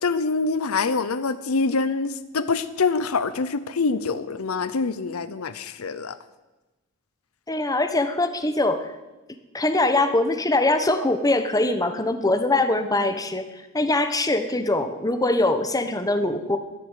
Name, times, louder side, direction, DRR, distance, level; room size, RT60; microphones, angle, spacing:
voice 1, 0.0-6.2, left 4 dB, 70° left, 13 dB, 0.7 m, -25 dB
voice 2, 7.5-8.9 9.5-16.6, left 2 dB, 15° left, 8 dB, 1.1 m, -22 dB
13.0 x 10.5 x 8.3 m, 1.1 s
head